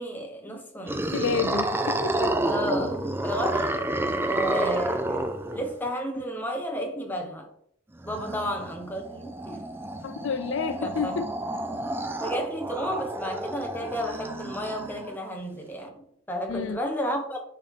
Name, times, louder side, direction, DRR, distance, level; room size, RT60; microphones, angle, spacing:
voice 1, 0.0-1.1 2.4-3.8 4.2-7.5 8.0-9.6 10.8-11.2 12.2-17.4, equal, 10° left, 1.0 m, -32 dB
sound 1, 0.9-5.9 8.0-15.2, right 1 dB, 10° right, 0.4 m, -30 dB
voice 2, 1.1-2.4 8.3-8.4 10.0-11.3 16.5-16.8, left 6 dB, 65° left, 0.3 m, -30 dB
10.5 x 3.5 x 3.7 m
head